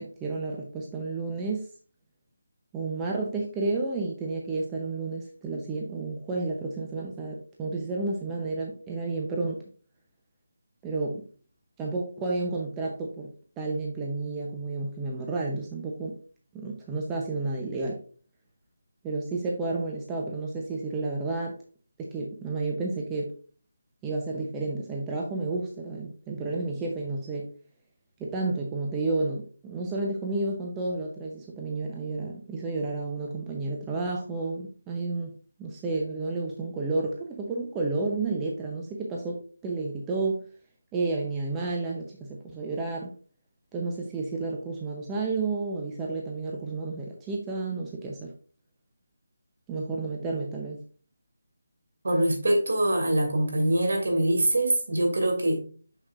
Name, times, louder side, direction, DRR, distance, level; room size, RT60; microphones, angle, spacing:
voice 1, 0.0-1.7 2.7-9.6 10.8-11.2 11.8-13.3 13.6-16.2 16.5-18.0 19.0-21.6 22.0-23.3 24.0-27.5 28.2-35.3 35.6-39.4 39.6-40.4 40.9-43.1 43.7-48.3 49.7-50.8, right 3 dB, 10° right, -1 dB, 0.8 m, -31 dB
voice 2, 52.0-55.6, right 1 dB, 65° right, 3 dB, 2.6 m, -24 dB
6.3 x 6.1 x 2.5 m, 0.39 s
figure-of-eight pair, 165°, 0 cm